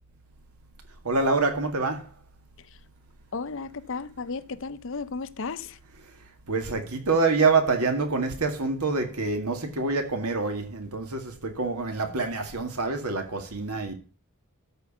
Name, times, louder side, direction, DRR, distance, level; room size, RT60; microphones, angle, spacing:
voice 1, 1.0-2.1 6.5-13.9, right 3 dB, 90° right, 2.1 m, -26 dB
voice 2, 3.3-5.8, left 4 dB, 60° left, 0.7 m, -34 dB
13.0 x 4.7 x 7.2 m
head